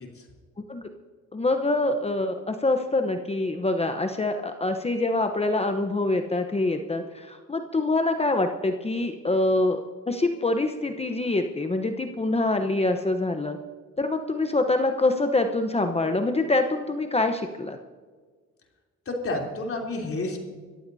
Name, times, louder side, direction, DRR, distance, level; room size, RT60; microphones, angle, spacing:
voice 1, 1.3-9.8 10.1-13.6 14.0-17.8, left 2 dB, 20° left, 6 dB, 1.0 m, -25 dB
voice 2, 19.0-20.4, left 2 dB, 45° left, 0 dB, 3.5 m, -30 dB
23.0 x 14.5 x 2.8 m, 1.5 s
cardioid pair, 90°, 30 cm